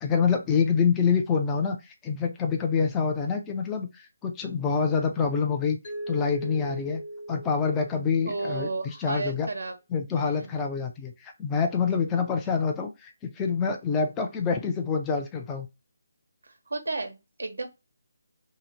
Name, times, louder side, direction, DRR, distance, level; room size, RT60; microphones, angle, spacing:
voice 1, 0.0-5.8 6.1-7.0 7.3-9.5 9.9-15.7, left 5 dB, 10° left, 0.4 m, -26 dB
Mallet percussion, 5.8-8.7, right 1 dB, 30° left, 0.8 m, -39 dB
voice 2, 8.2-9.7 10.1-10.5 16.4-17.7, right 3 dB, 90° right, 1.0 m, -33 dB
2.8 x 2.0 x 4.0 m
hypercardioid pair, 170°, 0 cm